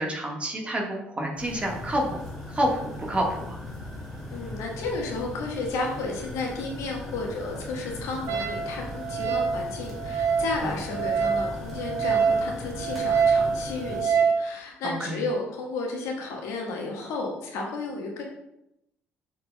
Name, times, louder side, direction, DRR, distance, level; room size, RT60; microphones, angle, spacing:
voice 1, 0.0-2.2 2.5-3.6 10.6-10.7 14.8-15.2, right 1 dB, 20° right, 0 dB, 1.5 m, -28 dB
sound 1, 1.4-14.0, left 1 dB, ahead, 2.4 m, -39 dB
voice 2, 4.3-18.2, left 3 dB, 60° left, 0 dB, 1.4 m, -33 dB
Wind instrument woodwind instrument, 8.3-14.4, right 6 dB, 55° right, 0.9 m, -26 dB
7.0 x 6.9 x 2.3 m, 0.82 s
figure-of-eight pair, 50°, 6 cm